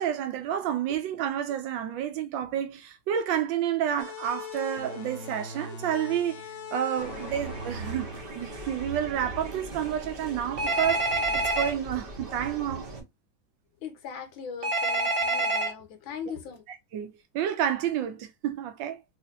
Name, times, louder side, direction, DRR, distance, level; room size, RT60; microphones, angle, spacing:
voice 1, 0.0-8.1 8.4-11.1 11.3-12.9 16.9-19.0, right 10 dB, 75° right, 1.3 m, -30 dB
sound 1, 4.0-9.3, left 4 dB, 55° left, 0.9 m, -41 dB
sound 2, 7.0-13.0, right 2 dB, 45° right, 0.7 m, -39 dB
Telephone, 10.6-11.7 14.6-15.7, right 2 dB, 60° right, 2.0 m, -26 dB
voice 2, 13.8-16.6, left 6 dB, 80° left, 1.7 m, -39 dB
4.3 x 2.7 x 2.5 m
omnidirectional pair, 2.1 m